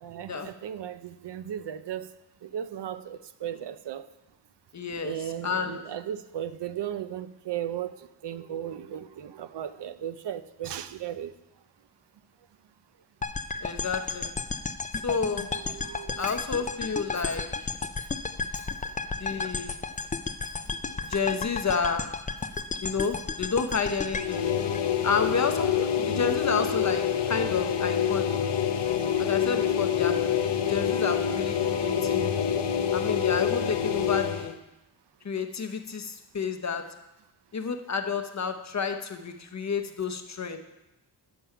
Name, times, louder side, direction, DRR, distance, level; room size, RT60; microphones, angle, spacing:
voice 1, 0.0-2.1 2.4-4.1 5.0-11.3 15.5-16.2 18.5-18.8 20.8-21.0 24.8-24.9 31.6-31.8, right 10 dB, 70° right, 0.6 m, -36 dB
voice 2, 4.7-5.8 13.6-14.3 15.0-15.5 16.2-17.7 19.2-19.7 21.0-22.2 22.8-24.5 25.0-28.5 29.2-30.4 30.7-32.3 32.9-34.6 35.2-37.0 37.5-40.6, left 5 dB, 40° left, 0.7 m, -30 dB
sound 1, 13.2-25.4, left 4 dB, 20° left, 0.4 m, -33 dB
sound 2, 24.1-34.5, left 8 dB, 70° left, 0.7 m, -26 dB
8.9 x 6.9 x 5.6 m
wide cardioid pair, 105°, 43 cm